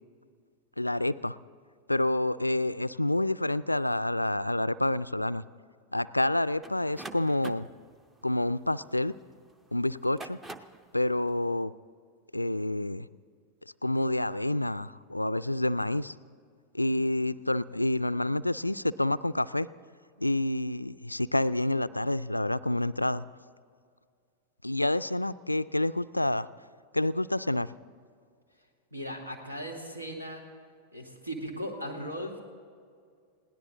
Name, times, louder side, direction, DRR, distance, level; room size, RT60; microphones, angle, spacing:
voice 1, 0.8-1.4 1.9-5.4 5.9-7.7 8.2-9.1 9.7-10.4 10.9-11.7 12.3-13.1 13.8-16.1 16.7-19.7 20.2-23.2 24.6-26.5 26.9-27.7, left 1 dB, 85° left, 18 dB, 0.3 m, -28 dB
sound 1, 6.6-9.3 10.0-10.9, right 2 dB, 15° right, 0.7 m, -45 dB
voice 2, 28.9-30.4 30.9-32.4, equal, 80° right, 3 dB, 2.1 m, -37 dB
20.5 x 17.0 x 3.9 m, 2.1 s
figure-of-eight pair, 90°, 0 cm